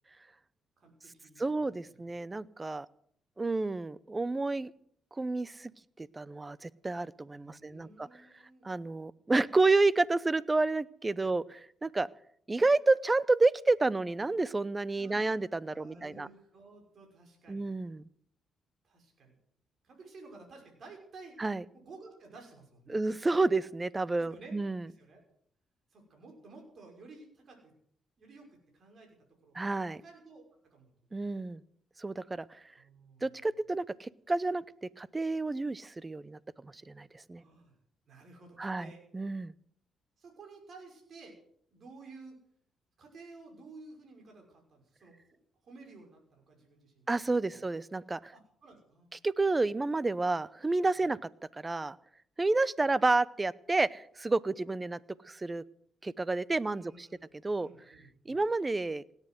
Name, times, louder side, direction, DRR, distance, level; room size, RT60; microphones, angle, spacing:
voice 1, 0.8-1.4 7.3-8.6 11.2-11.3 14.9-17.7 18.8-19.4 19.8-21.4 21.7-23.0 24.2-24.6 24.9-25.2 25.9-27.7 28.2-29.2 29.4-30.9 32.8-33.3 37.3-37.7 38.1-39.0 40.2-41.4 41.7-42.4 43.0-45.2 45.6-47.1 47.5-47.6 48.3-49.2 56.7-58.4, right 3 dB, 55° right, 2 dB, 6.1 m, -53 dB
voice 2, 1.4-2.9 3.4-4.7 5.2-5.7 6.0-8.1 8.6-12.1 12.5-16.3 17.5-18.0 21.4-21.6 22.9-24.9 29.5-30.0 31.1-31.6 32.0-32.5 33.2-34.6 35.0-37.4 38.6-39.5 47.1-48.3 49.2-51.2 51.5-52.0 52.4-55.0 55.2-55.6 56.0-57.1 57.4-57.7 58.3-59.1, right 3 dB, 20° right, 20 dB, 0.7 m, -30 dB
17.5 x 10.0 x 7.9 m, 0.64 s
cardioid pair, 75°, 0 cm